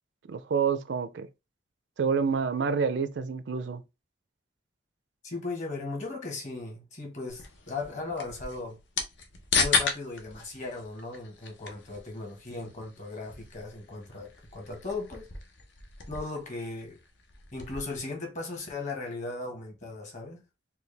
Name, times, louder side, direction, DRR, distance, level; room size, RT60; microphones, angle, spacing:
voice 1, 0.3-1.3 2.0-3.8, right 6 dB, 75° right, 0.4 m, -28 dB
voice 2, 5.2-8.8 9.5-15.3 16.1-17.0 17.5-20.4, left 3 dB, 45° left, 1.5 m, -37 dB
sound 1, 7.3-18.0, left 5 dB, 80° left, 0.9 m, -35 dB
4.4 x 2.2 x 3.3 m
head